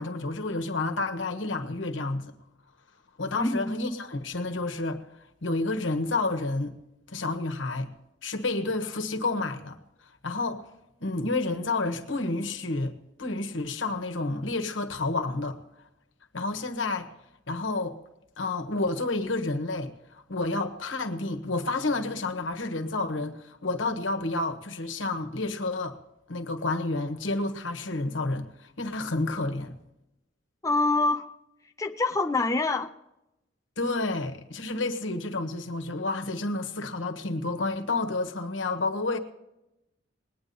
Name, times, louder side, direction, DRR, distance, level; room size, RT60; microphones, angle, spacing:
voice 1, 0.0-2.3 3.2-5.0 5.4-6.8 7.1-7.9 8.2-9.8 10.2-10.6 11.0-12.9 13.2-15.6 16.3-17.1 17.5-18.0 18.4-19.9 20.3-26.0 26.3-29.8 33.8-39.2, left 2 dB, 90° left, 1.3 m, -30 dB
voice 2, 3.4-3.8 30.6-31.3 31.8-32.9, left 2 dB, 15° left, 0.5 m, -25 dB
20.0 x 9.5 x 4.2 m
head